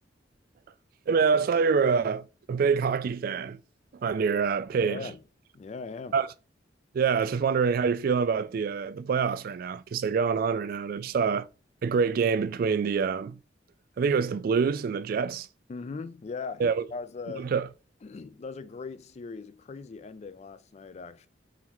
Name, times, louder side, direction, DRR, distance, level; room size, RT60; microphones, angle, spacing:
voice 1, 1.1-3.6 4.0-5.1 6.1-6.3 6.9-11.5 11.8-13.4 14.0-15.5 16.6-16.9 17.4-17.7, right 5 dB, 55° right, 0.3 m, -26 dB
voice 2, 4.8-5.2 5.5-6.2 15.7-16.6 16.9-17.5 18.0-21.3, left 4 dB, 40° left, 0.3 m, -39 dB
4.0 x 4.0 x 3.0 m
head